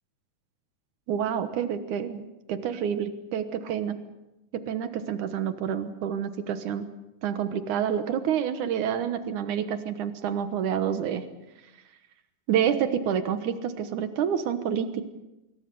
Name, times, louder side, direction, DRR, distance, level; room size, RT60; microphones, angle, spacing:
voice 1, 1.1-4.0 4.5-6.9 7.2-11.2 12.5-15.0, right 8 dB, 85° right, 10 dB, 2.7 m, -28 dB
25.5 x 22.5 x 7.0 m, 0.98 s
omnidirectional pair, 3.4 m